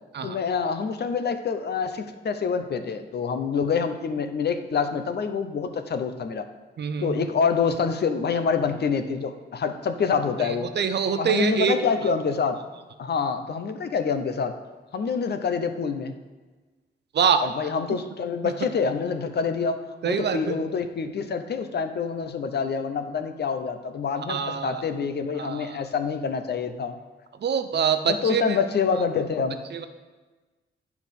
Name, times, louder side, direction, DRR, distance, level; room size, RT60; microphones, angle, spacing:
voice 1, 0.2-6.4 7.0-10.7 11.2-12.6 13.0-14.6 14.9-16.1 17.4-27.0 28.0-29.6, left 5 dB, 60° left, 8 dB, 0.7 m, -26 dB
voice 2, 6.8-7.2 10.6-11.8 17.1-17.4 17.9-18.0 18.4-18.5 20.0-20.5 24.3-24.8 25.4-25.8 27.4-28.6 29.7-29.9, right 7 dB, 65° right, 9 dB, 0.6 m, -25 dB
9.5 x 4.8 x 5.3 m, 1.3 s
cardioid pair, 80°, 19 cm